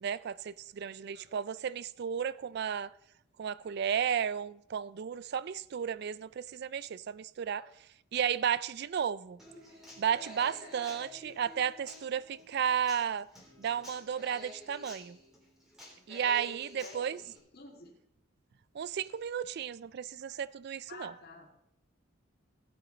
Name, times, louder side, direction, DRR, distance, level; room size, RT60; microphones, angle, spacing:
voice 1, 0.0-2.9 3.4-7.7 8.1-9.4 10.0-13.3 13.6-15.2 16.1-17.2 18.7-21.1, right 8 dB, 55° right, 0.3 m, -33 dB
Human voice / Acoustic guitar, 9.4-17.4, left 1 dB, ahead, 3.3 m, -51 dB
voice 2, 16.2-17.2 17.5-17.9 20.9-21.6, left 2 dB, 50° left, 2.1 m, -51 dB
17.0 x 7.2 x 3.9 m
head